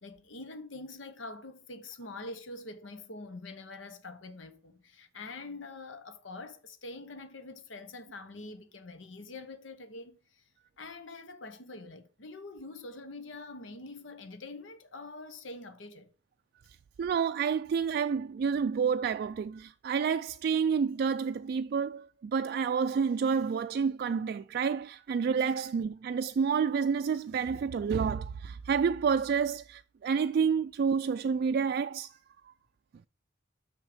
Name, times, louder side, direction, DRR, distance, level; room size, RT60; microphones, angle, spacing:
voice 1, 0.0-10.4 10.8-16.1 25.4-25.5, left 2 dB, 80° left, 0.9 m, -45 dB
voice 2, 17.0-32.2 32.5-32.6, right 6 dB, 55° right, 0.3 m, -29 dB
6.4 x 6.0 x 5.0 m
head